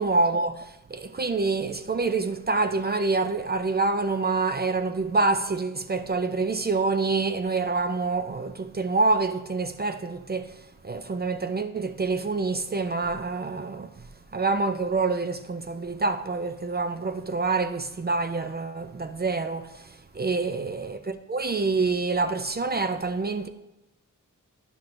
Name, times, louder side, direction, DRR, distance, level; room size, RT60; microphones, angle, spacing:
voice 1, 0.0-10.5 10.8-13.9 14.3-19.9 20.1-23.5, right 3 dB, 30° right, 0.4 m, -26 dB
9.9 x 5.9 x 2.5 m
wide cardioid pair, 75°, 32 cm